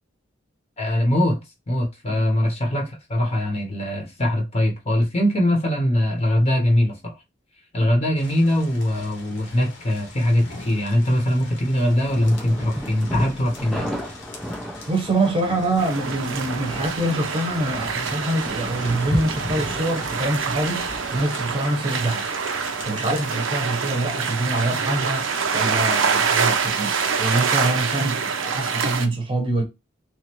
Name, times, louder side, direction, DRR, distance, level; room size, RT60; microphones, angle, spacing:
voice 1, 0.8-1.4 1.7-7.1 7.7-14.0, left 1 dB, 35° left, 0.9 m, -22 dB
sound 1, 8.2-27.4, left 2 dB, 70° left, 1.1 m, -41 dB
sound 2, 12.0-21.6, equal, ahead, 0.4 m, -35 dB
voice 2, 14.9-22.3 22.5-29.6, right 2 dB, 25° right, 0.8 m, -25 dB
sound 3, 15.8-29.1, right 6 dB, 85° right, 0.6 m, -26 dB
3.0 x 2.5 x 2.9 m
head